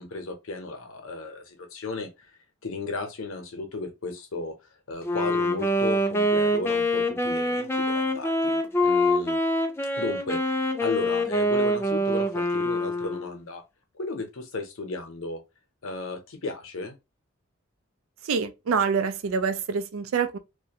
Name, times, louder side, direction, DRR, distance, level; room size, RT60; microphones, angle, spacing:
voice 1, 0.0-2.3 2.6-4.5 4.9-9.4 10.0-13.6 13.9-15.4 15.8-16.9, left 3 dB, 80° left, 0.7 m, -34 dB
Wind instrument woodwind instrument, 5.0-13.4, left 1 dB, 10° left, 0.4 m, -25 dB
voice 2, 18.2-20.4, right 6 dB, 80° right, 0.4 m, -26 dB
2.4 x 2.2 x 2.8 m
head